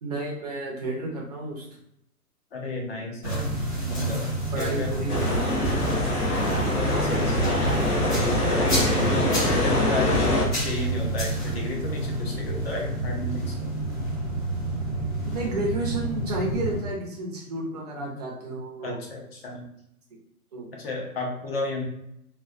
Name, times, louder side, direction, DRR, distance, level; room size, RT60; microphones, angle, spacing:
voice 1, 0.0-1.7 4.5-5.2 5.6-5.8 8.6-8.8 15.2-19.0 20.5-20.7, right 2 dB, 30° right, -2 dB, 0.5 m, -31 dB
voice 2, 2.5-3.5 3.8-4.3 4.5-4.9 6.3-7.5 8.2-13.7 18.8-19.6 20.8-21.8, left 2 dB, 40° left, -1 dB, 0.7 m, -33 dB
sound 1, 3.2-16.8, right 2 dB, 15° left, 1.0 m, -29 dB
sound 2, 5.1-10.5, left 1 dB, 70° left, 1.0 m, -24 dB
3.1 x 2.1 x 2.4 m, 0.79 s
hypercardioid pair, 140°, 46 cm